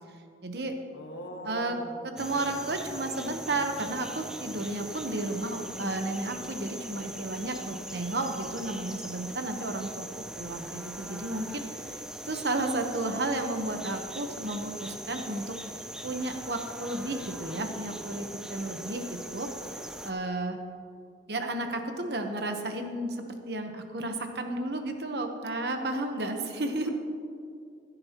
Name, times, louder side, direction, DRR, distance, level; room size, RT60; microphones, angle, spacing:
voice 1, 0.4-0.8 1.4-1.7 2.0-10.1 10.4-20.6 21.3-26.9, right 2 dB, 65° right, 5 dB, 1.1 m, -33 dB
voice 2, 0.9-2.0, left 1 dB, 80° left, 2 dB, 1.5 m, -41 dB
sound 1, 2.2-20.1, right 1 dB, 5° right, 0.5 m, -41 dB
14.5 x 12.0 x 3.0 m, 2.4 s
head